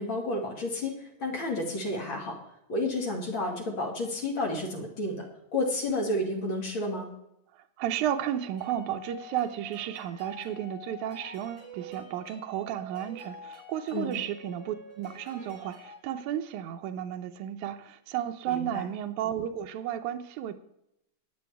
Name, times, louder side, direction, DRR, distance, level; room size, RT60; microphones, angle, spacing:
voice 1, 0.0-2.4 2.7-5.2 5.5-7.1 13.9-14.2 18.5-18.9, left 1 dB, 40° left, 2.8 m, -31 dB
voice 2, 7.8-20.5, right 10 dB, 80° right, 2.1 m, -33 dB
sound 1, 8.6-16.0, left 1 dB, 60° left, 5.5 m, -47 dB
21.0 x 7.0 x 3.5 m
omnidirectional pair, 3.5 m